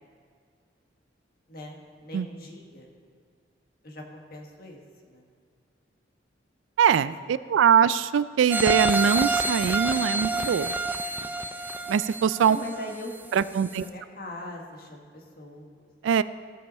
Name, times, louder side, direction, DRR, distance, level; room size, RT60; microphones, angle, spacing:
voice 1, 1.5-2.9 3.8-4.8 5.1-5.2 7.2-7.3 12.5-13.2 13.7-15.9, left 1 dB, 55° left, 1 dB, 1.4 m, -41 dB
voice 2, 6.8-10.8 11.9-12.6 13.3-13.8 16.0-16.2, right 7 dB, 90° right, 16 dB, 0.3 m, -22 dB
sound 1, 8.5-13.3 13.7-13.8, right 2 dB, 10° right, 0.4 m, -28 dB
15.5 x 5.5 x 4.3 m, 2.1 s
head